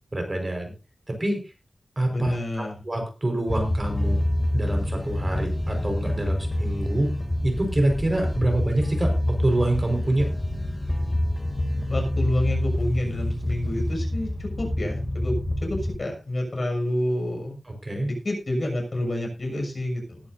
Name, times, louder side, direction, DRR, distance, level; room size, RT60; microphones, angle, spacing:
voice 1, 0.1-0.7 1.1-1.5 2.0-4.2 4.5-7.1 7.4-10.3 17.6-18.1, right 1 dB, 35° right, 3 dB, 5.0 m, -26 dB
voice 2, 2.1-2.7 11.9-17.5 18.0-20.2, left 1 dB, 50° left, 1 dB, 6.7 m, -28 dB
sound 1, 3.5-16.0, left 1 dB, 25° left, 2.8 m, -27 dB
20.0 x 11.0 x 2.7 m, 0.30 s
wide cardioid pair, 90°, 0 cm